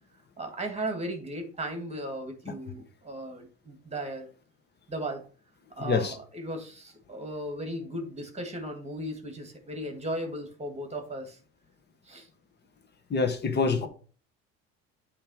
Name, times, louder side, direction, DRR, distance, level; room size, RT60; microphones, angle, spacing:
voice 1, 0.4-4.3 4.9-5.2 5.7-11.4 12.1-12.3, right 1 dB, 20° right, 2.1 m, -36 dB
voice 2, 5.8-6.2 13.1-13.9, left 4 dB, 30° left, 1.5 m, -26 dB
8.8 x 3.3 x 6.4 m
supercardioid pair, 85°, 32 cm